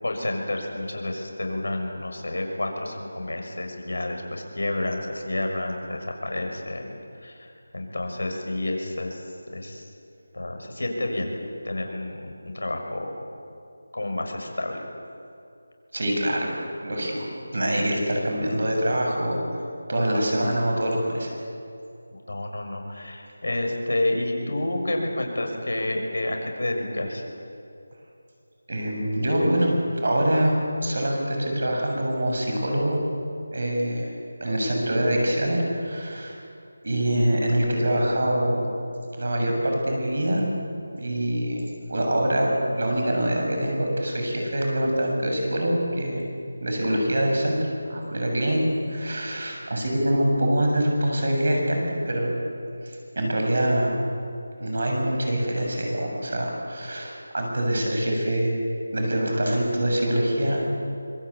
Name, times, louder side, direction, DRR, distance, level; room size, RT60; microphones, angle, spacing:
voice 1, 0.0-6.9 7.2-9.9 10.3-11.4 11.6-13.1 13.9-14.9 22.1-27.2 60.5-60.7, left 1 dB, 80° left, 2 dB, 6.4 m, -30 dB
voice 2, 15.9-17.3 17.5-19.6 19.9-21.3 28.7-29.7 30.0-33.0 33.5-34.1 34.4-36.4 36.8-38.7 39.2-40.5 40.9-46.2 46.6-48.6 48.9-52.4 52.8-54.0 54.6-58.6 58.9-60.7, right 1 dB, 55° right, 1 dB, 7.2 m, -24 dB
25.5 x 22.5 x 8.7 m, 2.5 s
figure-of-eight pair, 175°, 0 cm